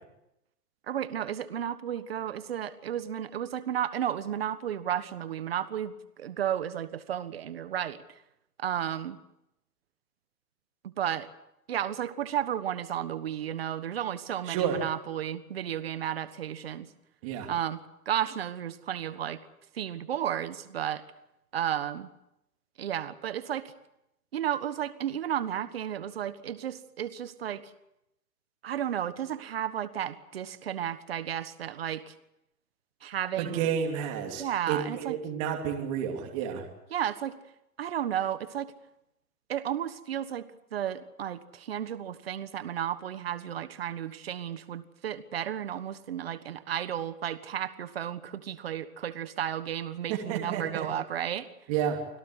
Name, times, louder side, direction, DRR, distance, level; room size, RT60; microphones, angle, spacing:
voice 1, 0.9-8.0 8.6-9.2 10.8-11.3 11.7-16.9 17.5-17.8 18.0-19.4 19.7-21.0 21.5-22.1 22.8-23.7 24.3-27.6 28.6-32.1 33.0-33.7 34.4-35.2 36.9-37.3 37.8-38.7 39.5-40.4 40.7-51.5, right 10 dB, 40° right, 13 dB, 1.4 m, -33 dB
voice 2, 14.5-14.8 17.2-17.5 33.4-36.7 50.1-50.9 51.7-52.0, right 8 dB, 20° right, 2 dB, 2.6 m, -30 dB
25.5 x 17.5 x 8.1 m, 0.85 s
hypercardioid pair, 170°, 47 cm